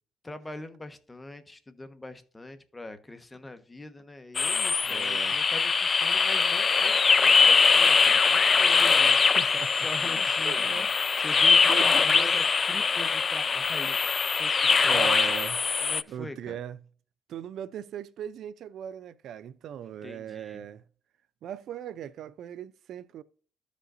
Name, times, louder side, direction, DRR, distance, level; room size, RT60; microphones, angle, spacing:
voice 1, 0.2-9.4 9.7-10.9 11.2-15.1 15.8-16.6 19.8-20.6, left 2 dB, 15° left, 1.2 m, -43 dB
sound 1, 4.3-16.0, left 5 dB, 40° left, 0.3 m, -22 dB
voice 2, 4.9-5.4 9.2-10.9 11.7-12.4 14.7-15.6 16.1-16.8 17.3-20.8 21.4-23.2, right 10 dB, 75° right, 0.4 m, -39 dB
13.5 x 5.1 x 2.5 m
cardioid pair, 90°, 0 cm